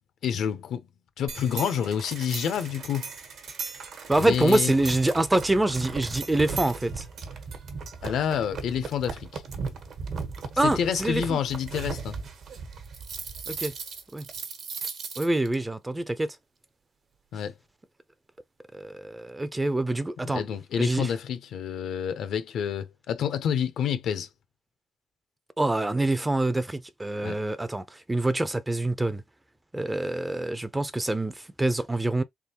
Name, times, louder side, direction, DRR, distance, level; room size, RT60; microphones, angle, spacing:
voice 1, 0.2-0.8 1.2-3.1 4.2-4.7 8.0-9.4 10.6-12.2 17.3-17.5 20.2-24.3 27.2-27.4, left 8 dB, 75° left, 0.7 m, -28 dB
sound 1, 1.3-15.5, right 5 dB, 65° right, 1.1 m, -37 dB
voice 2, 4.1-7.1 10.6-11.4 13.5-13.7 14.1-14.3 15.2-16.4 18.7-20.4 20.8-21.1 25.6-29.2 29.7-32.2, right 2 dB, 10° right, 0.5 m, -26 dB
3.6 x 3.5 x 2.9 m
cardioid pair, 115°, 0 cm